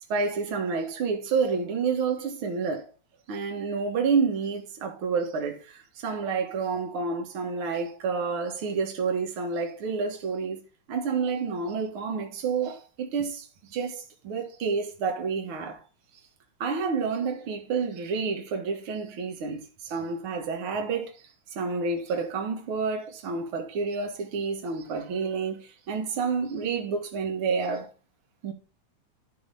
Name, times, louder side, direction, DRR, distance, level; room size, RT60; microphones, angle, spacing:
voice 1, 0.1-2.9 3.3-10.6 10.9-15.8 16.6-21.1 21.5-27.9 28.4-28.5, right 5 dB, 50° right, 2.3 m, -29 dB
12.0 x 5.8 x 4.0 m
omnidirectional pair, 3.3 m